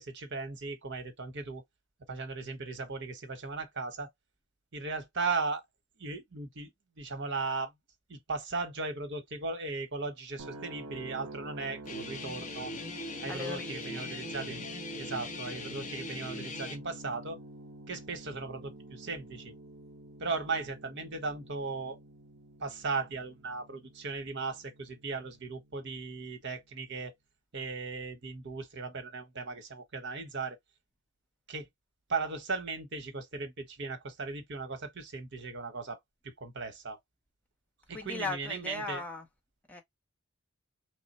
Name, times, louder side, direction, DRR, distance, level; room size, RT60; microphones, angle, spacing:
voice 1, 0.0-1.6 2.1-4.1 4.7-5.6 6.0-6.7 7.0-7.7 8.1-12.7 13.2-14.6 15.0-17.4 17.9-19.5 20.2-22.0 22.6-27.1 27.5-30.6 31.5-31.7 32.1-36.0 36.2-37.0 37.9-39.0, right 4 dB, 55° right, 0.9 m, -37 dB
sound 1, 10.4-26.3, equal, 70° right, 0.6 m, -48 dB
Guitar, 11.9-16.8, left 2 dB, 35° left, 0.9 m, -41 dB
voice 2, 13.3-14.1 37.9-39.3 39.7-39.8, left 3 dB, 5° left, 0.8 m, -38 dB
3.2 x 2.1 x 4.0 m
head